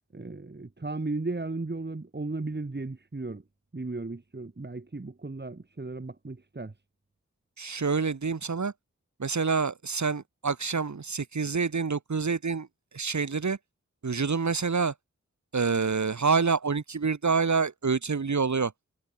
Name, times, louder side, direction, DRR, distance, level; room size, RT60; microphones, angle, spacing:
voice 1, 0.1-3.4 3.7-6.7, right 3 dB, 35° right, 2.8 m, -35 dB
voice 2, 7.6-8.7 9.2-12.7 12.9-13.6 14.0-14.9 15.5-18.7, right 5 dB, 75° right, 2.8 m, -27 dB
wide cardioid pair, 75°, 29 cm